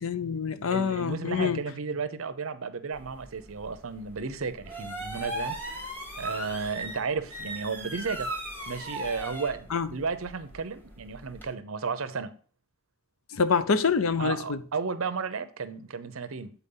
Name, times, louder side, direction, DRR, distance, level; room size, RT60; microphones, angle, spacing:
voice 1, 0.0-1.6 9.7-9.9 13.3-14.6, left 6 dB, 75° left, 0.6 m, -26 dB
voice 2, 0.7-5.9 6.2-8.3 8.7-12.3 14.2-16.5, right 5 dB, 80° right, 0.7 m, -33 dB
sound 1, 2.9-11.5, right 1 dB, 10° left, 1.6 m, -39 dB
8.2 x 4.3 x 5.4 m
head